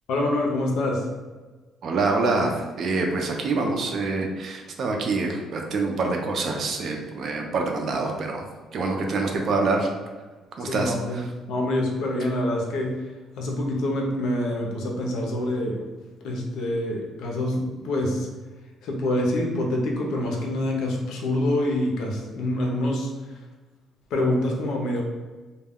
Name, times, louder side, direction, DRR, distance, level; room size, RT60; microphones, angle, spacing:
voice 1, 0.1-1.0 10.7-11.2 11.5-12.9 13.4-15.8 16.2-18.3 18.8-23.1 24.1-25.0, left 1 dB, 75° left, 0 dB, 0.6 m, -26 dB
voice 2, 1.8-8.4 8.7-9.9 10.6-11.2, right 3 dB, 55° right, 2 dB, 0.5 m, -26 dB
2.2 x 2.2 x 3.5 m, 1.3 s
cardioid pair, 115°, 0 cm